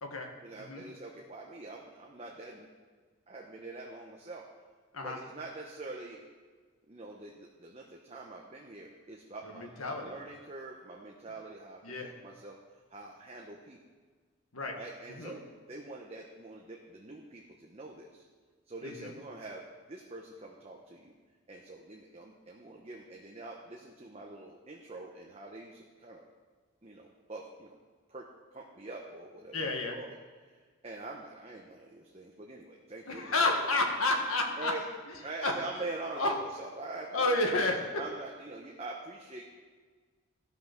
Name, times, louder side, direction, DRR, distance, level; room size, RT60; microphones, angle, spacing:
voice 1, 0.4-2.7 3.3-4.5 5.0-6.2 6.9-12.6 12.9-13.8 14.7-18.2 18.7-21.1 21.5-26.2 26.8-27.8 28.1-30.2 30.8-33.5 34.6-34.8 35.2-37.4 37.7-39.4, right 2 dB, 30° right, -1 dB, 0.9 m, -44 dB
voice 2, 9.5-10.1 11.8-12.1 14.5-14.7 15.1-15.4 18.8-19.1 29.5-29.9 33.1-34.7 35.4-35.5 36.2-36.3 37.1-37.8, left 2 dB, 90° left, 2 dB, 1.7 m, -30 dB
14.0 x 6.0 x 6.0 m, 1.5 s
head